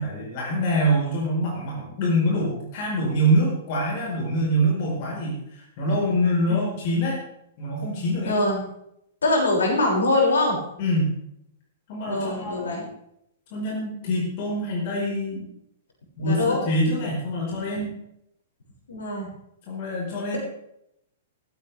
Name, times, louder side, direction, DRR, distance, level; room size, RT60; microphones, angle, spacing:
voice 1, 0.0-7.2 7.6-8.4 10.8-11.1 11.9-12.7 13.5-15.5 16.2-17.9 19.7-20.4, equal, 45° left, -2 dB, 4.8 m, -25 dB
voice 2, 8.2-8.6 9.2-10.6 12.0-12.8 16.2-16.6 18.9-19.3, left 2 dB, 70° left, -1 dB, 6.4 m, -23 dB
16.5 x 15.0 x 3.5 m, 0.77 s
figure-of-eight pair, 105°, 0 cm